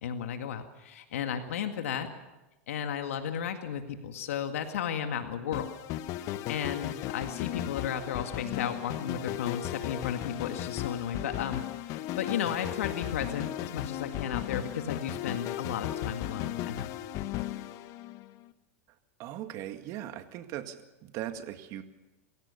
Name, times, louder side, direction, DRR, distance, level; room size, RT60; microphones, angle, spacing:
voice 1, 0.0-2.1 2.7-5.7 6.1-16.9, left 8 dB, 80° left, 6 dB, 1.9 m, -34 dB
sound 1, 5.5-18.4, left 13 dB, 45° left, 1.2 m, -36 dB
voice 2, 19.2-21.8, right 12 dB, 45° right, 8 dB, 2.0 m, -39 dB
26.5 x 16.0 x 7.0 m, 1.1 s
hypercardioid pair, 115°, 7 cm